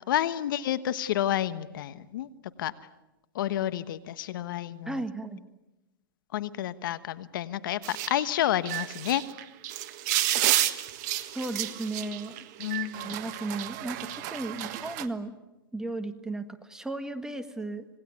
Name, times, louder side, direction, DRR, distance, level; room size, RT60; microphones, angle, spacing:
voice 1, 0.1-2.3 2.6-2.7 3.3-5.0 6.3-9.2 12.6-13.2, left 12 dB, 65° left, 14 dB, 1.3 m, -30 dB
voice 2, 4.8-5.4 11.3-12.4 13.0-15.3 15.7-17.9, right 2 dB, 5° right, 9 dB, 1.6 m, -35 dB
sound 1, 7.8-15.1, right 14 dB, 45° right, 1.5 m, -31 dB
26.5 x 19.0 x 9.6 m, 1.0 s
hypercardioid pair, 125°, 12 cm